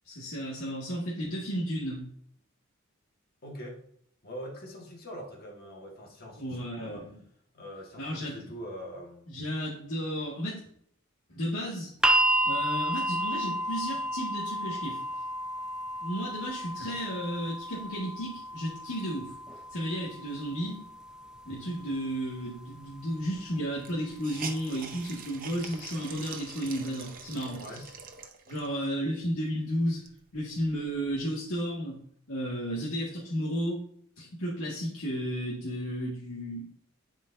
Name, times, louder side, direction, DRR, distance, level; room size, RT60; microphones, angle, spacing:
voice 1, 0.1-2.1 6.4-7.2 8.0-8.4 9.3-10.6 11.3-11.9 12.4-15.0 16.0-19.3 19.7-20.8 21.5-27.9 28.5-30.0 30.3-32.0 32.3-33.8 34.2-36.7, equal, 80° left, -6 dB, 2.0 m, -33 dB
voice 2, 3.4-3.8 4.2-7.1 7.5-9.2 27.5-27.9, equal, 45° left, 0 dB, 1.7 m, -43 dB
sound 1, 12.0-24.1 25.2-25.3, right 1 dB, 5° right, 0.3 m, -32 dB
Hiss, 22.9-23.0 23.3-23.4 23.8-28.8 29.4-29.5 29.9-31.2, right 6 dB, 40° right, 0.8 m, -45 dB
11.5 x 5.1 x 2.7 m, 0.66 s
head